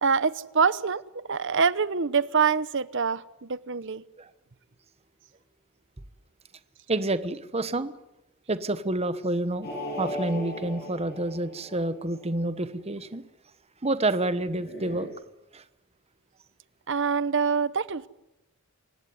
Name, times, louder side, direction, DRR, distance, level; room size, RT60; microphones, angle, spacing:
voice 1, 0.0-4.0 16.9-18.1, right 5 dB, 55° right, 17 dB, 0.9 m, -25 dB
voice 2, 6.9-7.9 8.5-9.7 10.0-13.2 13.8-15.1 15.5-15.6, right 2 dB, 30° right, 14 dB, 1.1 m, -28 dB
sound 1, 9.6-12.2 14.4-15.1, equal, 45° left, 7.6 m, -37 dB
27.5 x 16.0 x 9.5 m, 0.93 s
head